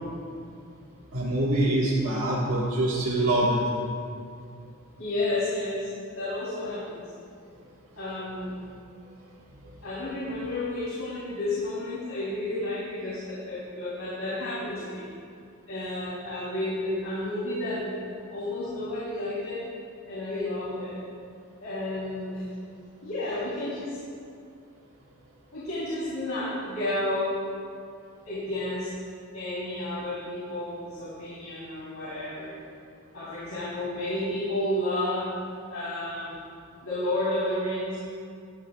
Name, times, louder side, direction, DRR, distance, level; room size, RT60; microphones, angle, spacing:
voice 1, 1.1-3.6, right 1 dB, 75° right, -6 dB, 1.7 m, -24 dB
voice 2, 5.0-5.9 6.1-7.1 7.9-8.6 9.8-15.1 15.7-17.9 18.3-19.6 20.1-21.0 21.6-22.5 23.0-24.0 25.5-27.4 28.2-28.9 29.3-32.5 33.1-35.4 35.7-36.4 36.8-38.0, left 1 dB, 80° left, -9 dB, 3.3 m, -31 dB
17.5 x 13.5 x 2.4 m, 2.4 s
head